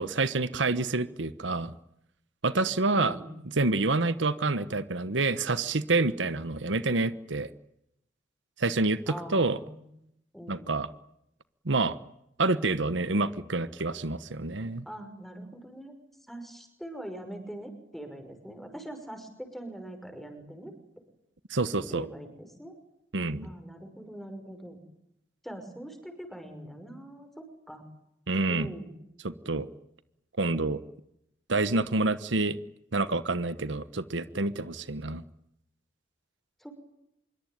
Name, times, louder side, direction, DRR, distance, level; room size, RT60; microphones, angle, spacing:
voice 1, 0.0-1.7 2.4-3.2 3.6-7.5 8.6-9.6 10.5-10.9 11.6-12.0 12.4-14.8 21.5-22.1 23.1-23.5 28.3-28.7 29.2-29.7 30.4-30.8 31.5-32.6 32.9-35.2, right 3 dB, 80° right, 14 dB, 1.2 m, -27 dB
voice 2, 2.9-3.5 9.1-9.9 10.3-10.8 14.9-15.9 16.3-20.7 21.9-22.7 23.4-24.8 25.4-27.8 28.5-29.0 36.6-36.7, right 1 dB, ahead, 6 dB, 5.8 m, -42 dB
26.0 x 23.5 x 9.5 m, 0.79 s
head